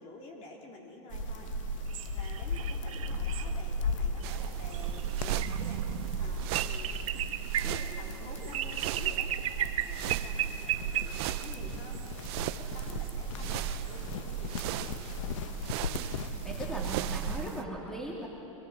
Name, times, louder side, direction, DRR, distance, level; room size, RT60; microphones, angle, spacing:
voice 1, 0.0-9.3 9.6-15.0 15.3-15.4, left 2 dB, 40° left, 0 dB, 3.2 m, -49 dB
sound 1, 1.1-17.6, left 7 dB, 70° left, 1.0 m, -40 dB
sound 2, 1.1-17.4, right 8 dB, 90° right, 1.1 m, -35 dB
sound 3, 4.2-17.6, right 17 dB, 50° right, 0.5 m, -41 dB
voice 2, 15.8-16.1 16.4-18.3, right 2 dB, 5° left, -3 dB, 2.6 m, -39 dB
24.5 x 19.0 x 6.1 m, 2.9 s
supercardioid pair, 145°, 17 cm